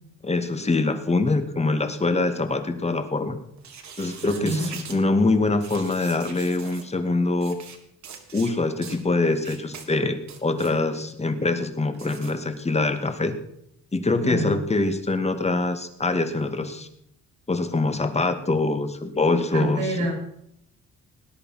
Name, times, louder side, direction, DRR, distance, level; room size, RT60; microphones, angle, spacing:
voice 1, 0.2-3.4 4.0-7.6 8.3-13.3 13.9-16.9 17.5-19.9, left 3 dB, 20° left, 8 dB, 2.2 m, -24 dB
sound 1, 3.6-5.0 5.6-6.9 7.4-7.8 8.0-8.5 8.8-9.0 9.4-9.9 10.2-10.7 11.9-12.3, right 6 dB, 65° right, 3.0 m, -41 dB
voice 2, 4.2-4.8 14.2-14.6 19.5-20.1, right 1 dB, 85° right, 2 dB, 7.6 m, -27 dB
19.5 x 10.5 x 5.9 m, 0.72 s
cardioid pair, 90°, 30 cm